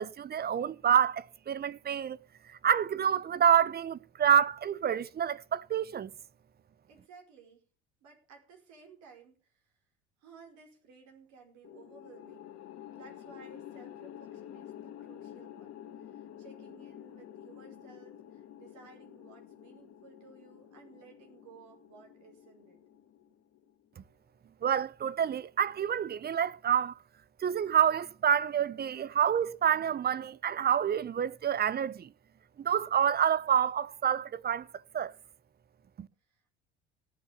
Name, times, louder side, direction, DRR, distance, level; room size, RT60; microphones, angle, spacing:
voice 1, 0.0-2.2 2.6-6.1 24.6-27.0 27.4-32.1 32.6-34.7 34.9-35.1 36.0-36.1, right 8 dB, 30° right, 0.8 m, -28 dB
voice 2, 6.9-7.6 8.0-9.7 10.2-12.5 12.9-22.8 36.3-36.5, right 5 dB, 60° right, 5.0 m, -56 dB
sound 1, 11.6-24.0, left 11 dB, 50° left, 1.9 m, -49 dB
18.0 x 6.4 x 7.0 m
figure-of-eight pair, 65°, 33 cm